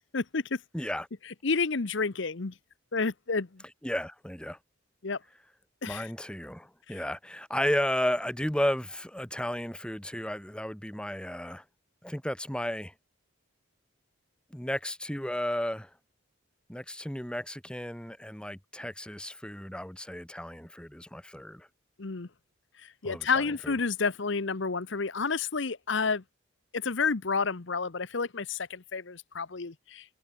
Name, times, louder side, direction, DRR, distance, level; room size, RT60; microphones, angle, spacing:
voice 1, 0.7-1.1 3.8-4.6 5.8-11.6 12.0-12.9 14.5-15.9 16.7-21.7 23.0-23.7, left 1 dB, 5° left, 1.3 m, -33 dB
voice 2, 1.4-2.5 2.9-3.5 5.0-5.2 5.8-6.1 6.9-7.0 22.0-22.3 23.0-26.2 26.8-30.0, left 4 dB, 60° left, 0.9 m, -30 dB
head